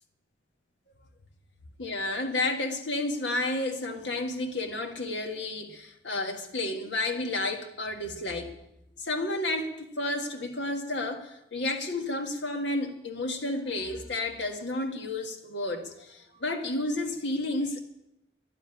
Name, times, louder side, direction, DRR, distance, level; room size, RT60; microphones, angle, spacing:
voice 1, 1.8-8.5 9.0-17.8, left 2 dB, 85° left, 5 dB, 1.7 m, -31 dB
11.5 x 7.5 x 9.9 m, 0.81 s
head